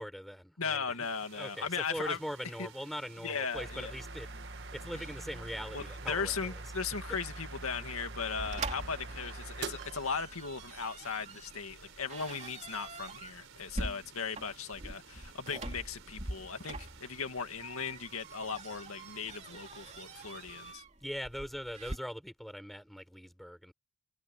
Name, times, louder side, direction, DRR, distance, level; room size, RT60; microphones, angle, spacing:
voice 1, 0.0-1.1 1.3-4.3 4.7-6.6 21.0-23.7, equal, ahead, 4.8 m, -41 dB
voice 2, 0.6-2.2 2.6-2.7 3.2-3.9 5.7-20.8, left 5 dB, 85° left, 2.1 m, -37 dB
sound 1, 1.0-20.7, right 6 dB, 70° right, 4.2 m, -56 dB
sound 2, 3.5-11.0, right 2 dB, 55° right, 1.6 m, -44 dB
sound 3, 8.4-22.0, right 2 dB, 30° right, 2.9 m, -44 dB
head